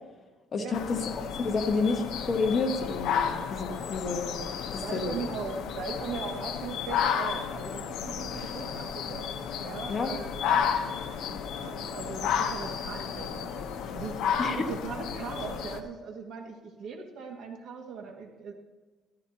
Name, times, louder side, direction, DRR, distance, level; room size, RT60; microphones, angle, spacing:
voice 1, 0.5-1.0 1.4-3.2 3.5-4.3 4.7-5.1 9.9-10.1 14.4-14.6, left 4 dB, 35° left, 3 dB, 1.3 m, -29 dB
sound 1, 0.7-15.8, left 7 dB, 70° left, 1.0 m, -32 dB
voice 2, 4.8-9.2 9.6-18.5, right 5 dB, 55° right, 2 dB, 1.9 m, -39 dB
14.5 x 13.5 x 2.9 m, 1.3 s
cardioid pair, 150°, 0 cm